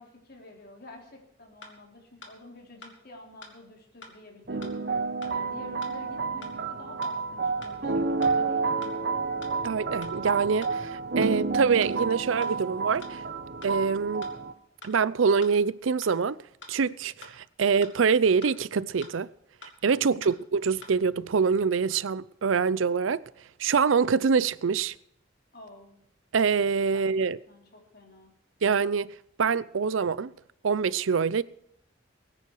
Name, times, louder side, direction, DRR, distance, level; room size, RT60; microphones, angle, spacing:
voice 1, 0.0-8.9 20.0-20.5 25.5-26.0 26.9-27.0 27.5-28.3, left 2 dB, 55° left, 3.5 m, -49 dB
sound 1, 1.6-1.7 2.2-2.3 2.8-2.9 3.4-3.5 4.0-4.1 4.6-4.7 5.2-5.3 5.8-5.9 6.4-6.5 7.0-7.1 7.6-7.7 8.2-8.3 8.8-8.9 9.4-9.5 10.0-10.1 10.6-10.7 11.2-11.3 11.8-11.9 12.4-12.5 13.0-13.1 13.6-13.7 14.2-14.3 14.8-14.9 15.4-15.5 16.0-16.1 16.6-16.7 17.2-17.3 17.8-17.9 18.4-18.5 19.0-19.1 19.6-19.7 20.2-20.3 20.8-20.9, left 3 dB, 70° left, 2.6 m, -45 dB
sound 2, 4.5-14.5, right 4 dB, 55° right, 1.3 m, -30 dB
voice 2, 9.6-13.2 13.6-14.3 14.8-16.4 16.7-19.3 19.8-23.2 23.6-24.9 26.3-27.4 28.6-30.3 30.6-31.4, right 5 dB, 85° right, 0.5 m, -25 dB
20.5 x 9.8 x 4.7 m
head